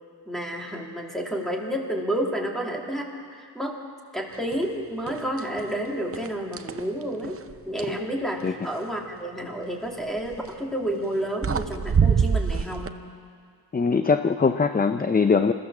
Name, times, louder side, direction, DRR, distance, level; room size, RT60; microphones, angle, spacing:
voice 1, 0.3-3.8 4.1-7.4 7.7-13.0, right 1 dB, ahead, 0 dB, 2.5 m, -30 dB
sound 1, 4.5-4.7 5.1-5.7 6.1-8.0 10.2-10.5 11.1-11.2 11.4-12.9, right 6 dB, 35° right, 0.7 m, -25 dB
voice 2, 13.7-15.5, left 5 dB, 25° left, 8 dB, 0.5 m, -21 dB
27.5 x 15.5 x 7.3 m, 2.1 s
wide cardioid pair, 150°, 40 cm